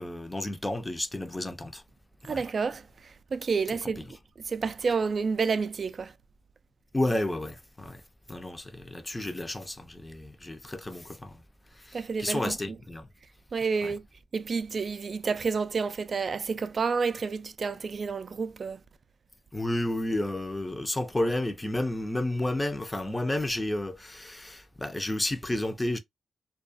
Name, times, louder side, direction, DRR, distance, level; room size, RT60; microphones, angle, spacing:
voice 1, 0.0-1.8 2.3-2.4 4.0-4.1 6.9-8.0 8.3-11.4 11.7-13.1 13.8-13.9 19.5-26.0, left 1 dB, 15° left, 0.5 m, -31 dB
voice 2, 2.2-4.1 4.4-6.1 11.9-12.5 13.5-14.0 14.3-18.8, right 5 dB, 50° right, 0.3 m, -29 dB
2.3 x 2.3 x 2.5 m
cardioid pair, 65°, 0 cm